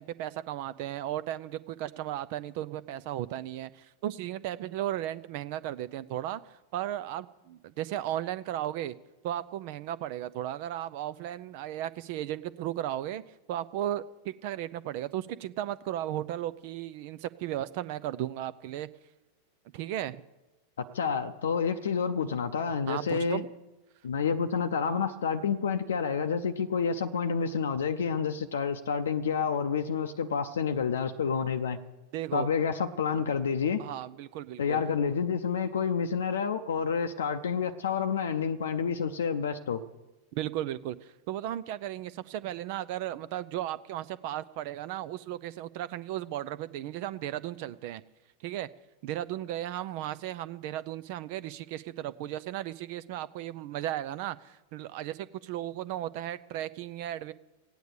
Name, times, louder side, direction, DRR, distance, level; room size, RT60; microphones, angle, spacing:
voice 1, 0.0-8.9 9.2-13.2 13.5-18.9 19.7-20.2 22.9-23.5 32.1-32.5 33.8-34.8 40.3-48.0 48.4-48.7 49.0-57.3, right 12 dB, 45° right, 0.4 m, -35 dB
voice 2, 20.8-23.4 24.0-31.8 32.3-33.8 34.6-39.8, left 6 dB, 65° left, 0.6 m, -29 dB
15.5 x 9.2 x 8.2 m
figure-of-eight pair, 90°, 0 cm